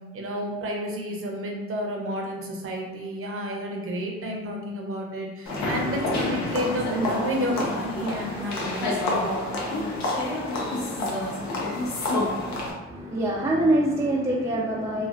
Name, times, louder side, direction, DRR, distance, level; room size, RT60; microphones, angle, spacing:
voice 1, 0.1-9.3 12.5-12.6, equal, 45° right, 0 dB, 0.7 m, -31 dB
sound 1, 5.5-12.7, left 2 dB, 65° left, 0.8 m, -28 dB
voice 2, 12.9-15.1, right 1 dB, 10° right, -3 dB, 0.4 m, -24 dB
3.1 x 2.2 x 2.5 m, 1.2 s
cardioid pair, 90°, 30 cm